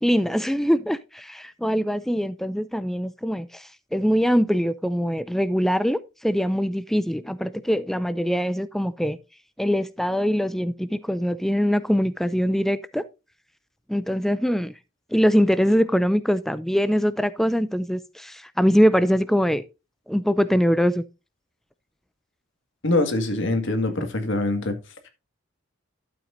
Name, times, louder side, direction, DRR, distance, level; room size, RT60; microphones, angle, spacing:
voice 1, 0.0-9.2 9.6-13.0 13.9-14.7 15.1-19.6 20.1-21.0, equal, ahead, 0.4 m, -23 dB
voice 2, 22.8-24.8, left 2 dB, 65° left, 2.0 m, -23 dB
12.0 x 7.9 x 2.6 m
head